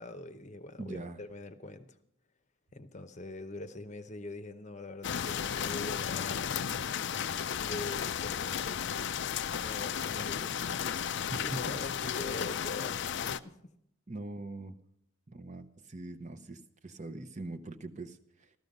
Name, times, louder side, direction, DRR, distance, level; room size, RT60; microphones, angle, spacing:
voice 1, 0.0-1.9 2.7-10.6 11.4-13.6, left 2 dB, 35° left, 10 dB, 0.8 m, -44 dB
voice 2, 0.8-1.2 11.3-11.4 11.7-11.8 14.1-14.8 15.3-18.5, right 2 dB, 35° right, 8 dB, 0.7 m, -42 dB
sound 1, 5.0-13.4, left 8 dB, 55° left, 0.4 m, -34 dB
14.0 x 13.5 x 5.3 m, 0.76 s
head